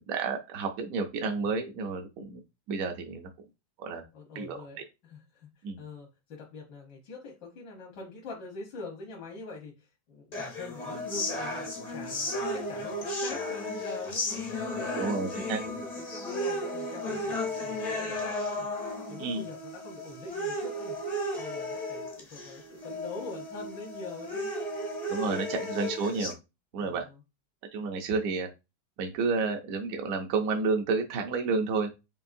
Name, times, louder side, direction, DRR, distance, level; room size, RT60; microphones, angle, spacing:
voice 1, 0.0-2.4 2.7-3.3 3.8-4.0 4.4-4.6 5.6-5.8 14.9-15.6 19.2-19.4 25.1-26.3 26.7-27.0 27.7-28.5 29.0-31.9, right 4 dB, 65° right, 4 dB, 0.9 m, -30 dB
voice 2, 4.1-18.2 18.5-18.7 19.1-21.0 21.4-24.5 25.2-25.7 26.8-27.2, left 3 dB, 80° left, -1 dB, 1.7 m, -44 dB
sound 1, 10.3-26.3, left 1 dB, 45° left, 0.5 m, -34 dB
5.3 x 2.7 x 2.5 m, 0.25 s
omnidirectional pair, 1.9 m